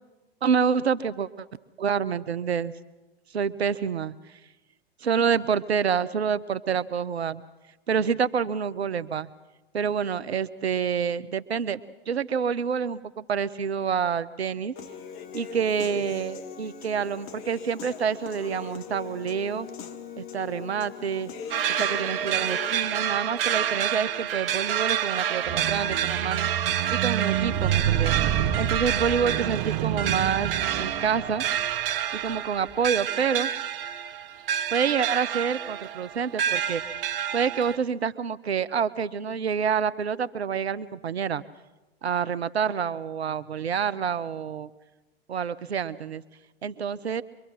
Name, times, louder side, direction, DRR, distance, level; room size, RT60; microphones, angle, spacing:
voice 1, 0.4-1.5 1.8-2.7 3.3-4.4 5.0-7.4 7.9-9.3 9.7-11.8 12.1-14.7 15.3-19.7 20.2-21.3 21.8-26.5 26.9-28.1 28.6-31.4 32.1-33.5 34.7-37.1 37.3-41.4 42.0-44.7 45.3-46.2 46.6-47.2, right 7 dB, 85° right, 16 dB, 0.8 m, -27 dB
Human voice / Piano, 14.8-22.8, left 7 dB, 40° left, 1.7 m, -40 dB
sound 1, 21.5-37.8, right 10 dB, 60° right, 1.1 m, -28 dB
Squeak, 25.5-31.8 32.6-32.7, right 10 dB, 40° right, 1.4 m, -28 dB
24.5 x 23.5 x 6.2 m, 1.1 s
figure-of-eight pair, 100°, 31 cm